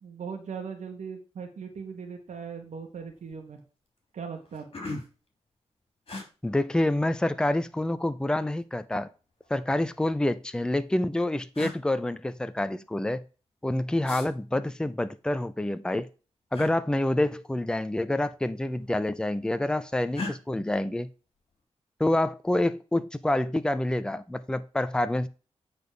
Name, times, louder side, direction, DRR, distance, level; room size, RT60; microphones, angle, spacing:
voice 1, 0.0-3.6 4.1-4.7, right 6 dB, 90° right, 1.6 m, -39 dB
sound 1, 2.3-2.6 3.0-3.4 4.0-4.1 4.4-5.3 6.1-6.3 7.5-8.2 9.3-10.2 11.1-11.2 11.5-11.8 14.0-14.3 16.5-16.7 18.1-18.3 18.6-19.2 20.1-20.4, left 3 dB, 50° left, 3.0 m, -38 dB
voice 2, 6.4-9.1 9.5-13.2 13.6-16.1 16.5-21.1 22.0-25.3, left 1 dB, 5° left, 0.6 m, -27 dB
9.0 x 4.1 x 5.1 m
wide cardioid pair, 100°, 12 cm